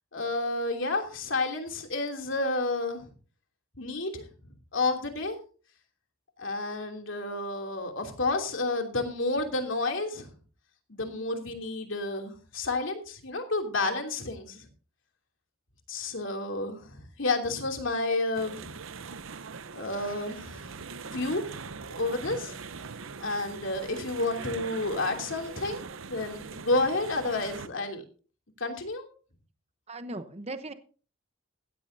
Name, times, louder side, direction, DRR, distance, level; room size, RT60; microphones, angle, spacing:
voice 1, 0.1-3.1 3.8-4.3 4.7-5.4 6.4-10.3 10.9-14.7 15.9-18.7 19.7-20.7 21.1-21.4 22.0-22.6 23.2-28.0 28.6-29.1, left 2 dB, 65° left, 4 dB, 2.9 m, -30 dB
sound 1, 18.3-27.7, right 5 dB, 75° right, 0.8 m, -42 dB
voice 2, 29.9-30.7, right 2 dB, 30° right, 10 dB, 0.9 m, -38 dB
16.5 x 14.0 x 2.7 m, 0.38 s
head